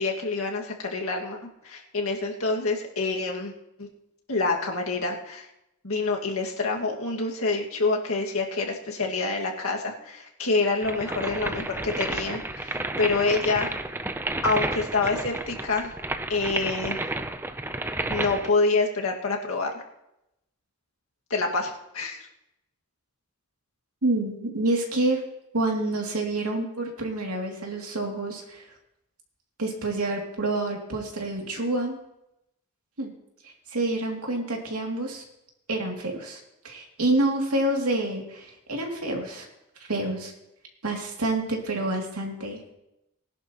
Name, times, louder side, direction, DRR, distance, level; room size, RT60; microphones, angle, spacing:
voice 1, 0.0-3.5 3.8-3.9 4.3-5.5 5.8-13.7 14.4-15.9 16.3-17.0 18.1-19.7 21.3-22.3, left 3 dB, 75° left, 0 dB, 2.0 m, -27 dB
sound 1, 10.8-18.5, right 2 dB, 10° right, 0.5 m, -31 dB
voice 2, 24.0-25.2 25.5-28.6 29.6-32.0 33.0-33.1 33.4-35.2 35.7-39.5 39.9-40.3 40.8-42.8, right 2 dB, 90° right, 1 dB, 2.6 m, -28 dB
19.5 x 11.0 x 3.0 m, 0.87 s
head